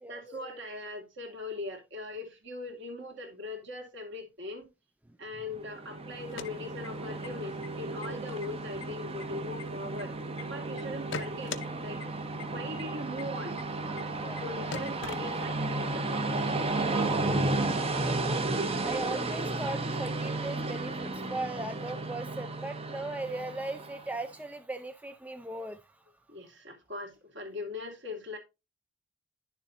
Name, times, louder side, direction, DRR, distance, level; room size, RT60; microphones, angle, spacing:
voice 1, 0.1-4.7 5.2-10.1 10.5-11.5 11.8-12.0 12.5-13.6 14.4-16.1 26.3-28.4, left 2 dB, 60° right, 2.7 m, -40 dB
Train, 5.6-24.2, right 2 dB, 30° right, 0.9 m, -33 dB
sound 1, 6.1-7.3 7.6-7.7 8.0-8.5 8.8-10.4 10.8-11.7 12.0-12.1 12.4-12.5 12.8-12.9 13.2-13.3 13.6-13.7 14.0-14.1 14.4-14.5 14.7-15.7, left 5 dB, 60° left, 0.7 m, -40 dB
voice 2, 17.1-18.5 18.8-26.0, right 2 dB, 5° right, 0.4 m, -38 dB
10.5 x 7.0 x 2.6 m
head